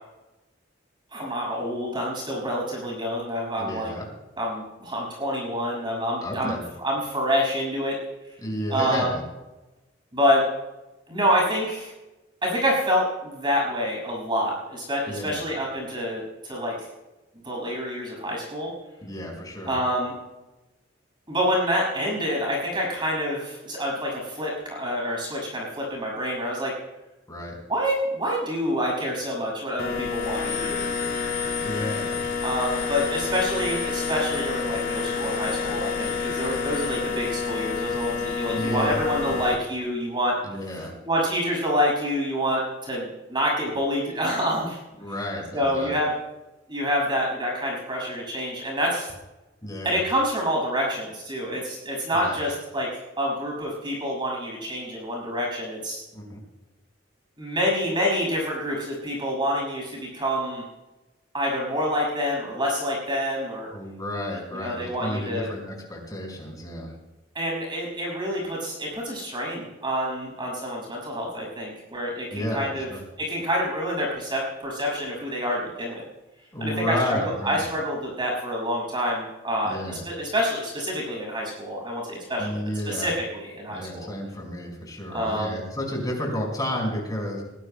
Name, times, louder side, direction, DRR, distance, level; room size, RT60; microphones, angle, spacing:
voice 1, 1.1-3.9 4.4-7.9 8.7-9.1 10.1-10.4 11.1-11.9 12.4-16.7 17.4-18.7 19.6-20.1 21.3-26.7 27.7-30.8 32.4-40.3 41.1-44.8 45.5-46.1 46.7-49.1 49.8-52.9 53.2-56.0 57.4-60.6 61.3-63.7 64.5-65.5 67.3-72.9 73.2-76.0 76.6-82.6 82.9-84.1 85.1-85.6, equal, 25° right, -2 dB, 6.2 m, -27 dB
voice 2, 3.6-4.1 6.2-6.6 8.4-9.2 15.1-15.4 19.0-19.7 27.3-27.5 31.6-32.2 38.5-39.0 39.3-39.5 40.4-40.9 45.0-46.2 49.6-50.0 52.1-52.4 56.1-56.4 63.7-66.9 72.3-73.0 76.5-77.6 79.6-80.0 82.4-83.1 83.7-87.4, left 1 dB, 20° left, 0 dB, 5.0 m, -31 dB
sound 1, 29.8-39.6, left 5 dB, 50° left, 2.2 m, -28 dB
23.0 x 17.0 x 2.2 m, 1.0 s
head